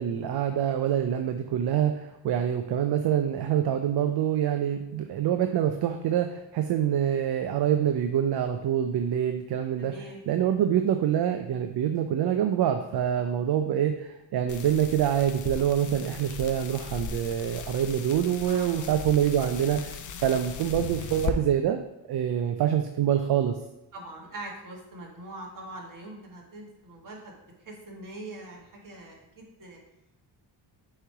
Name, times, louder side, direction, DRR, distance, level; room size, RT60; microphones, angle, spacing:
voice 1, 0.0-9.9 10.3-21.8 22.1-23.6, right 10 dB, 65° right, 7 dB, 0.5 m, -26 dB
voice 2, 9.7-10.2 13.1-13.4 18.4-18.8 20.2-20.3 23.9-29.8, right 1 dB, 50° right, -1 dB, 1.7 m, -43 dB
sound 1, 14.5-21.3, left 6 dB, 45° left, 0.6 m, -38 dB
6.4 x 3.2 x 4.7 m, 0.88 s
cardioid pair, 100°, 42 cm